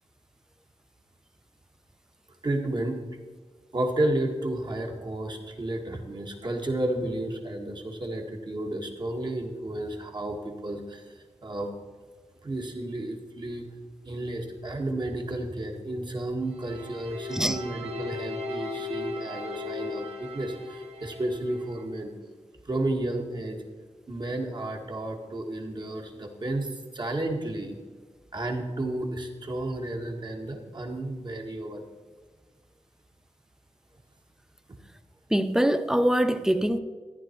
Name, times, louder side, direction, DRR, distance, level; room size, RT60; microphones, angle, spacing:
voice 1, 2.4-3.0 3.7-11.7 12.4-13.7 14.0-22.1 22.7-23.6 24.1-27.7 28.3-31.8, right 1 dB, 40° right, 2 dB, 1.8 m, -32 dB
sound 1, 16.6-21.8, left 3 dB, 65° right, 2.1 m, -37 dB
voice 2, 35.3-36.8, equal, 5° right, 11 dB, 0.7 m, -23 dB
14.0 x 10.5 x 4.5 m, 1.4 s
wide cardioid pair, 110°, 11 cm